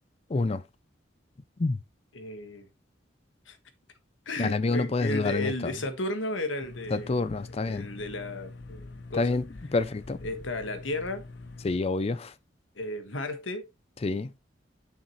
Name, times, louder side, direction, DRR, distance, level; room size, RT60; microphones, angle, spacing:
voice 1, 0.3-0.6 1.6-1.8 4.4-5.8 6.9-7.9 9.1-10.2 11.6-12.3 14.0-14.3, left 3 dB, 30° left, 0.4 m, -28 dB
voice 2, 2.1-2.7 3.5-3.6 4.2-7.2 7.6-9.3 10.2-11.2 12.7-13.7, left 2 dB, 90° left, 1.5 m, -34 dB
sound 1, 6.6-11.8, left 2 dB, 70° left, 0.8 m, -44 dB
7.3 x 6.4 x 3.0 m
head